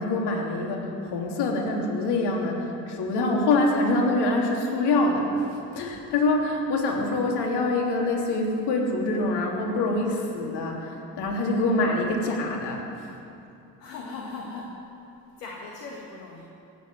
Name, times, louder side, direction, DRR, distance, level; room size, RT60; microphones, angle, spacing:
voice 1, 0.0-5.4 5.7-12.9, left 2 dB, 55° left, 0 dB, 3.3 m, -25 dB
voice 2, 11.6-11.9 13.8-14.9 15.4-16.4, left 3 dB, 80° left, -1 dB, 1.8 m, -38 dB
16.5 x 8.5 x 9.7 m, 2.7 s
hypercardioid pair, 60°, 47 cm